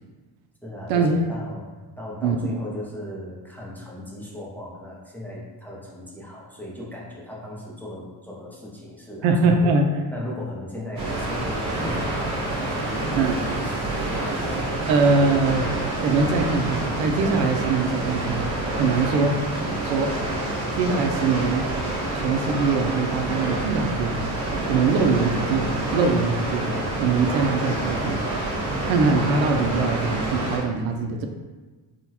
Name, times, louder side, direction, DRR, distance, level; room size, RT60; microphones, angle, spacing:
voice 1, 0.6-1.7 2.0-14.4, left 1 dB, 5° left, -5 dB, 0.5 m, -37 dB
voice 2, 9.2-9.8 13.2-13.4 14.9-15.7 16.0-18.4 18.8-19.3 19.8-20.1 20.8-21.7 22.1-24.4 24.7-26.7 27.0-28.2 28.8-31.3, right 4 dB, 85° right, 4 dB, 0.5 m, -22 dB
Water, 11.0-30.6, right 1 dB, 40° right, 1.4 m, -27 dB
3.7 x 2.1 x 2.8 m, 1.3 s
cardioid pair, 115°, 45 cm